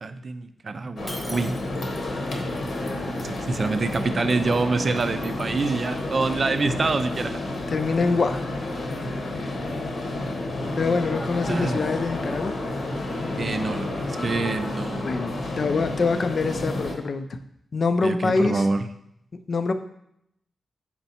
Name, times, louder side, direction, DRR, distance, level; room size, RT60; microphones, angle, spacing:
voice 1, 0.0-1.6 2.8-3.0 3.2-7.4 11.5-11.8 13.3-15.1 18.0-18.8, right 3 dB, 40° right, 10 dB, 0.4 m, -26 dB
sound 1, 1.0-16.9, left 2 dB, 65° left, 1.1 m, -30 dB
Shatter, 1.1-2.1, equal, ahead, 0.6 m, -40 dB
voice 2, 7.7-8.4 9.1-9.3 10.8-12.5 13.2-14.0 15.0-17.4 17.7-18.6 19.5-19.7, left 4 dB, 50° left, 9 dB, 0.5 m, -25 dB
5.9 x 4.4 x 4.1 m, 0.75 s
wide cardioid pair, 115°, 0 cm